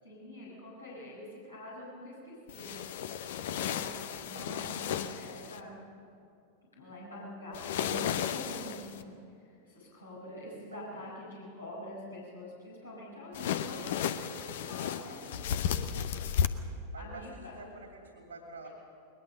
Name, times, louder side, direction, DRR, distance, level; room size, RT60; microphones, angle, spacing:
voice 1, 0.0-3.0 3.5-3.9 4.2-5.8 6.7-9.2 9.5-15.8 17.0-17.5 18.6-18.7, left 1 dB, 80° left, -6 dB, 6.5 m, -46 dB
sound 1, 2.5-5.6 7.5-9.0 13.3-16.5, left 9 dB, 55° left, 0.9 m, -34 dB
voice 2, 10.7-11.0 16.9-18.7, right 2 dB, 75° right, 2 dB, 2.9 m, -48 dB
21.0 x 21.0 x 6.7 m, 2.6 s
figure-of-eight pair, 90°, 0 cm